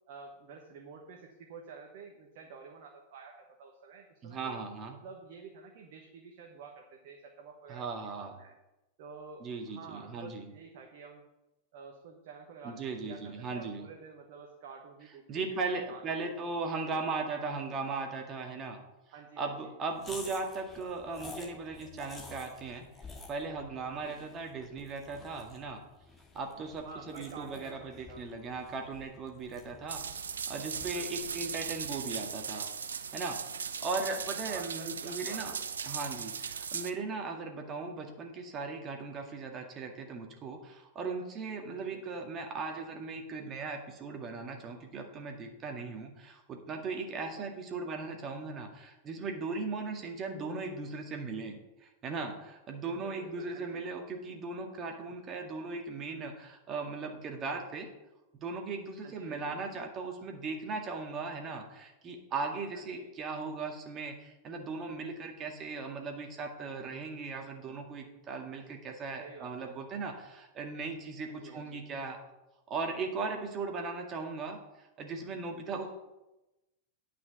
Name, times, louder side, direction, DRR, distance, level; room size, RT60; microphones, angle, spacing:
voice 1, 0.1-4.6 5.0-8.5 9.0-11.3 11.7-16.4 16.8-17.2 19.1-19.7 20.1-20.3 24.0-24.3 26.8-28.3 30.9-31.3 34.4-35.5 41.7-42.2 47.2-47.5 52.8-53.8 59.0-59.6 62.7-63.1 69.2-69.7 71.3-71.8 75.7-75.9, right 5 dB, 50° right, 2 dB, 1.3 m, -50 dB
voice 2, 4.2-5.0 7.7-8.3 9.4-10.5 12.6-13.8 15.3-18.8 19.4-22.9 23.3-25.8 26.3-30.0 30.5-32.7 33.1-35.5 35.9-51.6 51.8-57.9 58.4-72.2 72.7-75.9, right 4 dB, 30° right, 3 dB, 1.9 m, -38 dB
sound 1, 20.0-32.4, left 3 dB, 20° left, 2.0 m, -51 dB
sound 2, 29.9-36.9, right 6 dB, 70° right, 0.6 m, -38 dB
9.5 x 5.9 x 7.1 m, 0.98 s
figure-of-eight pair, 90°, 0 cm